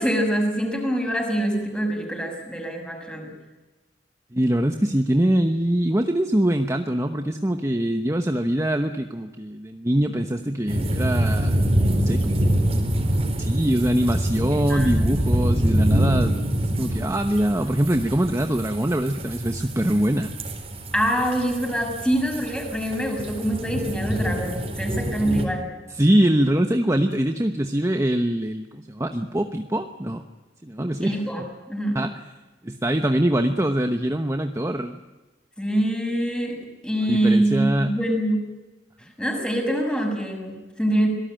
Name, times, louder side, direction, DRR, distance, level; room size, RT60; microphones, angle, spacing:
voice 1, 0.0-3.3 14.7-15.0 20.9-25.7 31.0-32.0 35.6-36.6 36.8-38.5 39.2-41.1, right 1 dB, 5° left, 2 dB, 6.1 m, -24 dB
voice 2, 4.3-11.6 11.9-12.4 13.4-20.3 25.9-30.2 30.6-31.2 31.9-32.1 32.6-35.0 37.1-37.9, right 1 dB, 15° right, 6 dB, 1.0 m, -23 dB
sound 1, 10.7-25.4, right 1 dB, 35° right, 4.2 m, -25 dB
26.0 x 18.5 x 9.0 m, 1.2 s
head